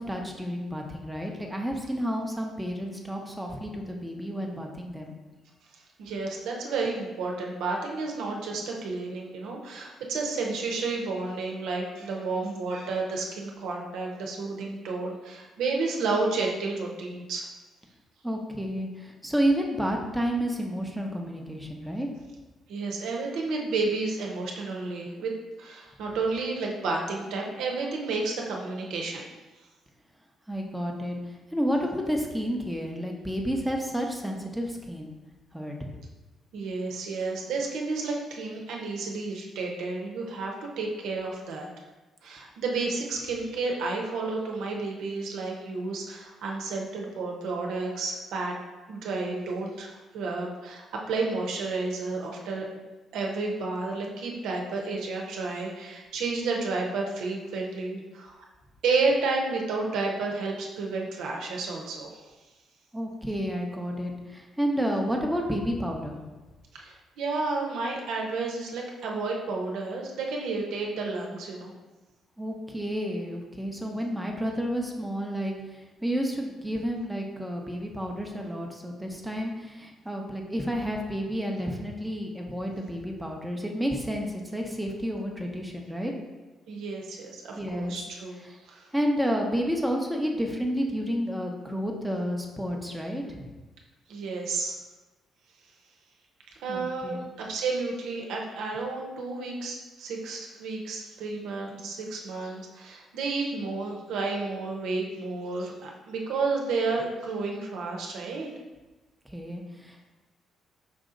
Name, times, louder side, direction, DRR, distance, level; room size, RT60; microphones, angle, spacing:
voice 1, 0.0-5.1 18.2-22.1 30.5-35.1 35.5-35.8 62.9-66.2 72.4-86.1 87.5-87.9 88.9-93.5 96.7-97.3 109.3-110.0, equal, 5° right, 0 dB, 0.7 m, -30 dB
voice 2, 6.0-17.5 22.7-25.3 25.6-29.3 36.5-41.7 42.2-48.5 48.9-58.4 58.8-62.2 66.7-71.7 86.7-88.9 94.1-94.7 96.6-108.5, right 3 dB, 85° right, 0 dB, 0.8 m, -31 dB
5.1 x 2.8 x 3.7 m, 1.2 s
cardioid pair, 90°, 0 cm